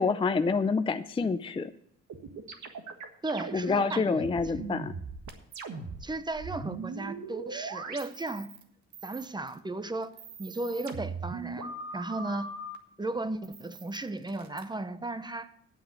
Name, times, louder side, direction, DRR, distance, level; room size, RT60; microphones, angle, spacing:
voice 1, 0.0-1.7 3.5-4.9, left 4 dB, 20° left, 10 dB, 0.5 m, -27 dB
sound 1, 2.1-8.6 8.9-9.6 10.0-12.8 13.4-14.6, right 4 dB, 70° right, 1.7 m, -40 dB
voice 2, 3.2-4.2 6.0-8.5 9.0-12.6 13.0-15.5, right 2 dB, 15° right, 12 dB, 0.8 m, -35 dB
9.2 x 7.6 x 8.0 m, 0.71 s
cardioid pair, 90°, 30 cm